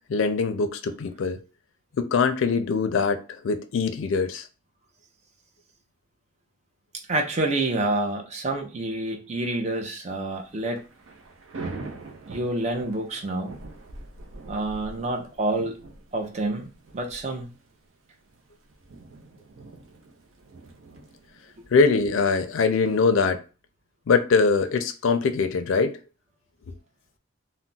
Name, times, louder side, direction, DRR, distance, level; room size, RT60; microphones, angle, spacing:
voice 1, 0.0-1.4 2.0-4.4 21.7-23.4 24.1-26.0, left 4 dB, 80° left, 0.4 m, -22 dB
voice 2, 7.1-10.8 12.3-13.5 14.5-15.8 16.1-17.5, right 2 dB, 35° right, 0.5 m, -28 dB
Thunder / Rain, 10.4-23.1, right 3 dB, 85° right, 0.5 m, -44 dB
2.3 x 2.1 x 3.8 m
head